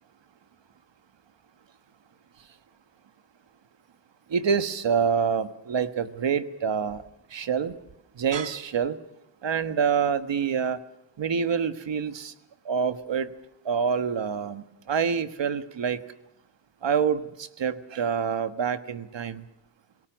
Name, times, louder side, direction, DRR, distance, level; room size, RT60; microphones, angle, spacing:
voice 1, 4.3-7.0 7.3-7.8 8.2-9.0 9.4-10.8 11.2-12.3 12.6-13.3 13.6-16.0 16.8-19.5, right 6 dB, 75° right, 11 dB, 1.4 m, -26 dB
27.5 x 18.5 x 6.2 m, 0.86 s
wide cardioid pair, 120°, 44 cm